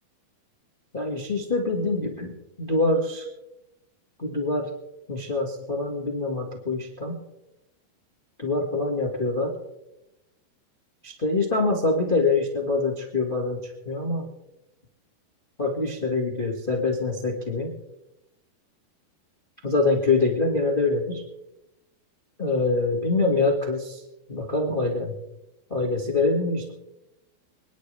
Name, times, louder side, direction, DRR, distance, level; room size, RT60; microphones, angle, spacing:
voice 1, 0.9-2.3 2.6-3.2 4.2-4.7 5.1-7.2 8.4-9.5 11.0-14.3 15.6-17.7 19.6-21.2 22.4-24.0 24.3-25.1 25.7-26.7, left 3 dB, 60° left, 1 dB, 0.5 m, -25 dB
26.5 x 10.5 x 3.3 m, 0.92 s
omnidirectional pair, 4.5 m